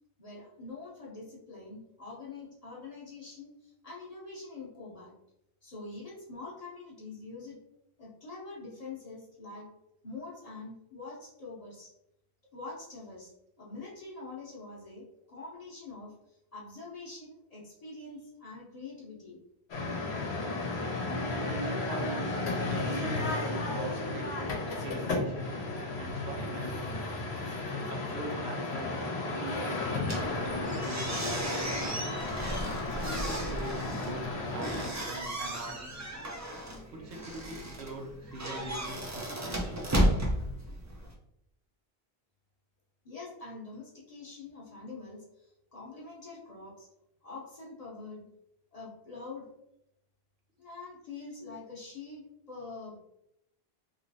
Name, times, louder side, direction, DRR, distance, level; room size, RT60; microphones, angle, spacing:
voice 1, 0.2-5.1 5.6-7.6 8.0-9.7 10.0-11.9 12.5-13.3 13.6-19.4 43.0-46.9 47.2-48.3 48.7-49.5 50.6-53.0, left 3 dB, 40° left, -5 dB, 0.8 m, -45 dB
sound 1, 19.7-34.9, left 2 dB, 80° left, 1.0 m, -34 dB
voice 2, 21.4-22.4 22.7-25.5 26.0-27.1 27.7-32.1 32.9-36.0 36.9-39.7, right 2 dB, 85° right, 0 dB, 1.0 m, -42 dB
sound 2, 30.0-41.1, right 1 dB, 25° right, 0.4 m, -34 dB
3.0 x 3.0 x 2.7 m, 0.81 s
omnidirectional pair, 1.1 m